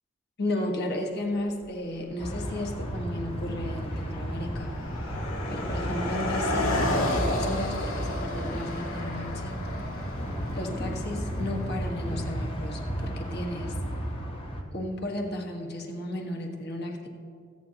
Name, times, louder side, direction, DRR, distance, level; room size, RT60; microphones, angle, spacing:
voice 1, 0.4-4.7 5.5-9.6 9.9-10.1 10.5-13.7 14.7-17.1, left 1 dB, 50° left, 1 dB, 1.5 m, -34 dB
Car passing by, 1.6-1.7 2.5-2.8 3.0-13.4, left 1 dB, 80° left, 1.8 m, -33 dB
sound 1, 2.2-14.6, equal, 25° left, 1.0 m, -34 dB
22.5 x 8.8 x 2.9 m, 2.3 s
head